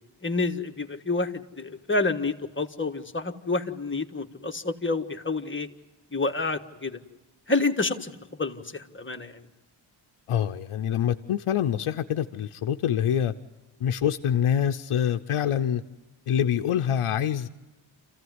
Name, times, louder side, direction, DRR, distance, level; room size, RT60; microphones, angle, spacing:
voice 1, 0.2-5.7 6.1-7.0 7.5-9.5, left 3 dB, 25° left, 1.5 m, -29 dB
voice 2, 10.3-13.3 13.8-15.8 16.3-17.5, left 9 dB, 90° left, 0.7 m, -25 dB
26.5 x 15.5 x 9.5 m
cardioid pair, 55°, 49 cm